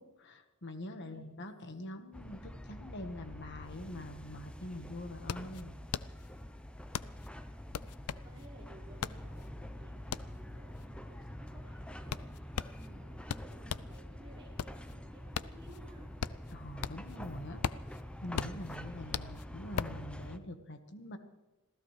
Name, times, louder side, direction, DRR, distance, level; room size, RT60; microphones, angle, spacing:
voice 1, 0.0-5.8 16.5-17.6 18.2-21.2, left 1 dB, 55° left, 7 dB, 1.5 m, -44 dB
voice 2, 1.0-1.5 8.1-16.1, right 1 dB, 25° right, -6 dB, 5.0 m, -58 dB
sound 1, 2.1-20.4, equal, 5° left, 0.7 m, -46 dB
sound 2, 5.3-14.0 14.4-17.2 17.5-20.1, left 7 dB, 80° left, 0.4 m, -39 dB
26.5 x 16.0 x 3.3 m, 1.1 s
head